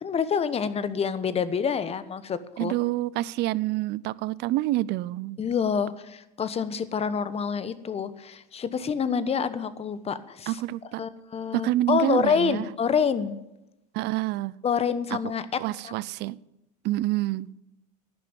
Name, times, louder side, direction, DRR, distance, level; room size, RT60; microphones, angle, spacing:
voice 1, 0.0-2.7 5.4-10.6 11.0-13.4 14.6-15.5 15.8-15.9, left 6 dB, 30° left, 14 dB, 1.1 m, -27 dB
voice 2, 2.6-5.4 10.5-11.0 11.5-12.7 13.9-14.6 15.1-15.2 15.6-16.4 16.8-17.5, right 16 dB, 55° right, 21 dB, 0.6 m, -27 dB
11.5 x 9.5 x 8.9 m, 0.92 s
supercardioid pair, 95°, 21 cm